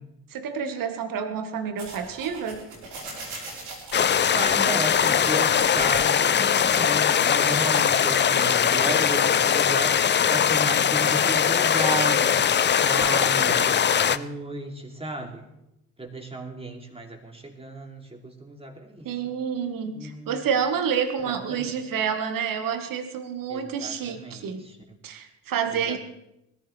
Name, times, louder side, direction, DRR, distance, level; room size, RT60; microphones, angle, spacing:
voice 1, 0.3-2.6 19.0-24.6 25.0-26.0, right 7 dB, 60° right, 7 dB, 1.7 m, -28 dB
sound 1, 1.8-5.9, right 3 dB, 80° right, 3.7 m, -40 dB
sound 2, 3.9-14.2, left 8 dB, 30° left, 0.6 m, -21 dB
voice 2, 4.3-15.4 16.0-19.3 19.9-20.4 21.2-21.7 23.5-25.0 25.7-26.0, right 2 dB, 15° right, 2 dB, 2.8 m, -34 dB
21.0 x 14.0 x 3.4 m, 0.85 s
hypercardioid pair, 45°, 38 cm